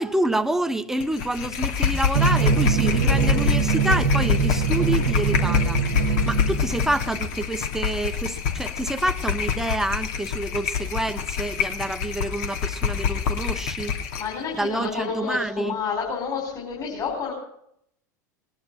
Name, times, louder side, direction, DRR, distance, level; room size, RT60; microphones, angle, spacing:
voice 1, 0.0-5.8 6.3-14.0 14.6-15.7, right 1 dB, 5° right, 1.0 m, -27 dB
sound 1, 1.0-14.3, left 7 dB, 65° left, 2.7 m, -26 dB
Drum, 2.1-7.2, right 7 dB, 80° right, 1.9 m, -23 dB
voice 2, 14.2-17.3, left 6 dB, 40° left, 5.3 m, -29 dB
20.0 x 11.0 x 5.7 m
hypercardioid pair, 90°, 10 cm